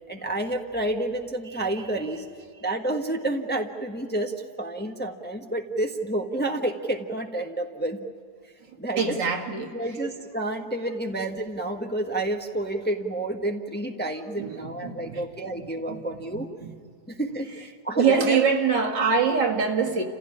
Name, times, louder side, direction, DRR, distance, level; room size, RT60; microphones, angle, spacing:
voice 1, 0.1-2.3 2.5-8.0 8.8-9.2 9.6-16.5 17.1-17.5 17.8-18.5, right 1 dB, 5° left, 3 dB, 1.3 m, -29 dB
voice 2, 9.0-9.7 14.4-15.2 15.6-16.0 16.3-16.7 17.9-20.0, right 5 dB, 75° right, 1 dB, 2.7 m, -24 dB
29.5 x 16.0 x 9.9 m, 2.3 s
omnidirectional pair, 1.9 m